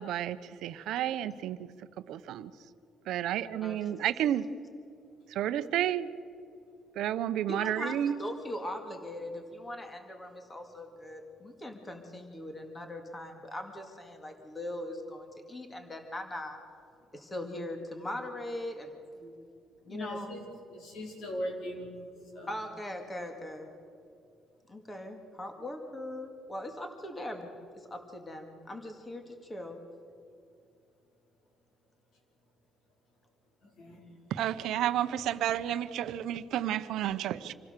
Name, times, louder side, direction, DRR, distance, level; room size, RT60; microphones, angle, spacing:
voice 1, 0.0-1.7 2.1-2.5 3.1-4.5 5.3-6.1 6.9-8.2 34.3-37.5, right 11 dB, 70° right, 12 dB, 0.8 m, -31 dB
voice 2, 7.5-16.6 17.1-18.9 19.2-19.3 19.9-20.4 22.5-23.7 24.7-27.5 27.9-29.8, left 1 dB, 15° left, 5 dB, 2.0 m, -40 dB
voice 3, 19.9-21.9 22.3-22.5 33.6-34.0, equal, 60° left, 1 dB, 4.7 m, -39 dB
26.0 x 16.5 x 6.7 m, 2.6 s
cardioid pair, 155°, 0 cm